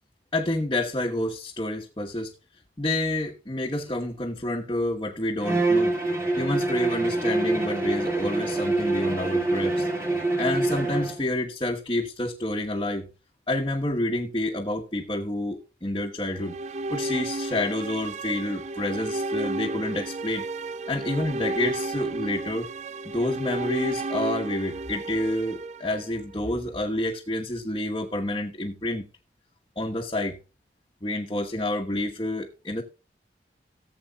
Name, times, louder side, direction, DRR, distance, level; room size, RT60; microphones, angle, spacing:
voice 1, 0.3-2.3 2.8-5.9 6.4-9.9 10.4-13.1 13.5-16.6 16.9-22.7 23.0-29.0 29.8-30.4 31.0-32.8, left 1 dB, 25° left, 1.2 m, -29 dB
Bowed string instrument, 5.4-11.2, right 2 dB, 15° right, 1.9 m, -25 dB
sound 1, 16.2-26.5, right 2 dB, 40° right, 0.4 m, -33 dB
18.0 x 7.9 x 2.3 m
head